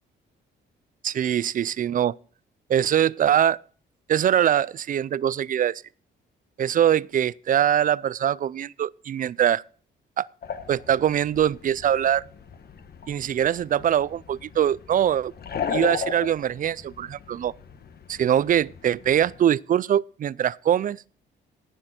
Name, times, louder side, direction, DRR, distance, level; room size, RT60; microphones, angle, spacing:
voice 1, 1.0-2.1 2.7-3.6 4.1-5.8 6.6-9.6 10.2-10.3 10.7-12.3 13.1-15.3 15.7-17.5 18.1-21.0, right 10 dB, 45° right, 0.4 m, -23 dB
sound 1, 10.4-19.4, left 6 dB, 50° left, 1.3 m, -36 dB
17.0 x 6.5 x 4.3 m
cardioid pair, 90°, 20 cm